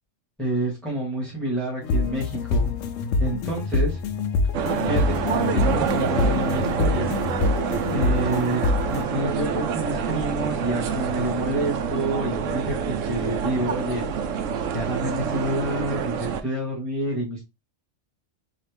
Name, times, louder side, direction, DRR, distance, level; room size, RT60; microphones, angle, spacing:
voice 1, 0.4-2.7 3.2-4.0 4.8-7.1 7.9-8.6 8.9-14.4 14.7-17.4, right 1 dB, ahead, -4 dB, 1.8 m, -28 dB
sound 1, 1.8-9.0, left 3 dB, 80° left, 1.0 m, -25 dB
sound 2, 4.5-16.4, right 7 dB, 80° right, 1.0 m, -27 dB
4.1 x 3.0 x 3.4 m, 0.24 s
omnidirectional pair, 1.3 m